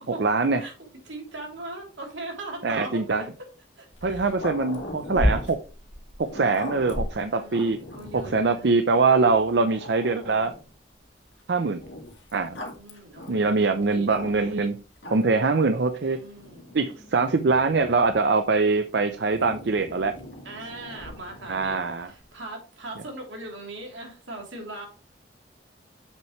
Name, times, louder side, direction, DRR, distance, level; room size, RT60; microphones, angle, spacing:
voice 1, 0.2-0.6 2.6-3.2 4.0-5.6 6.3-7.8 8.1-10.5 11.5-11.8 12.3-12.6 13.3-14.7 15.1-16.2 16.7-20.1 21.5-22.1, right 4 dB, 65° right, 8 dB, 0.6 m, -23 dB
voice 2, 1.0-3.3 3.8-4.3 7.1-7.6 7.9-8.8 12.7-14.7 15.9-16.6 20.4-24.9, right 2 dB, 90° right, 1 dB, 3.1 m, -40 dB
Growling, 3.9-8.5 9.2-9.3 9.7-10.7 11.8-14.6 15.0-15.5 16.4-18.2 19.3-21.8, left 1 dB, 85° left, 2.0 m, -35 dB
7.4 x 6.5 x 3.1 m, 0.34 s
head